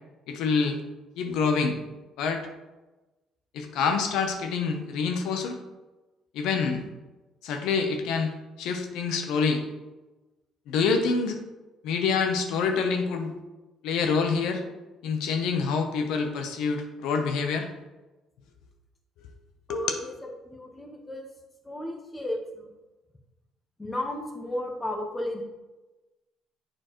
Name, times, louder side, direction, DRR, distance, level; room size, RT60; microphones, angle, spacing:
voice 1, 0.3-0.8 1.2-1.8 2.2-2.4 3.5-5.6 6.3-6.8 7.4-8.3 8.6-9.6 10.7-11.4 11.8-13.3 13.8-14.6 15.0-17.7 19.7-19.8, left 5 dB, 80° left, 5 dB, 0.7 m, -26 dB
voice 2, 19.7-21.3 21.6-22.7 23.8-25.4, left 1 dB, 15° left, 1 dB, 1.0 m, -34 dB
7.5 x 4.4 x 3.0 m, 1.1 s
cardioid pair, 95°, 0 cm